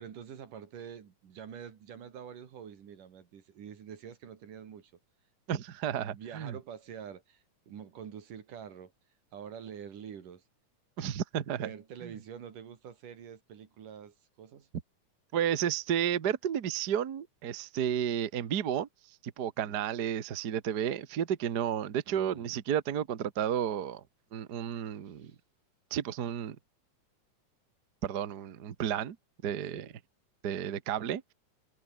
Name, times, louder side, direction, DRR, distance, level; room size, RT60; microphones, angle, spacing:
voice 1, 0.0-4.9 5.9-8.9 9.3-10.4 11.4-14.7 19.7-19.8 22.1-22.5 25.1-25.4 29.7-30.0, right 8 dB, 85° right, 4.2 m, -46 dB
voice 2, 5.5-6.5 11.0-11.7 12.0-12.1 15.3-18.9 19.4-24.0 24.3-25.3 25.9-26.6 28.0-29.2 29.4-29.8 30.4-31.2, right 9 dB, 50° right, 1.3 m, -32 dB
omnidirectional pair, 3.6 m